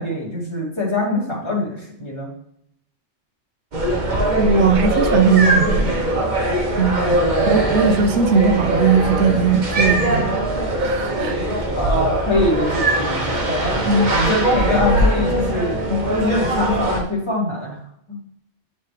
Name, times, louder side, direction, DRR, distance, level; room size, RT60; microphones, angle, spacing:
voice 1, 0.0-2.3 11.7-13.8 14.1-17.8 18.1-18.2, left 1 dB, 25° left, -5 dB, 2.5 m, -23 dB
sound 1, 3.7-17.0, right 1 dB, 45° right, 1.2 m, -21 dB
voice 2, 4.4-5.9 6.8-7.2 7.5-10.4 10.8-11.4 13.8-14.1, right 5 dB, 75° right, 7 dB, 1.1 m, -18 dB
10.0 x 4.2 x 3.3 m, 0.70 s
omnidirectional pair, 1.2 m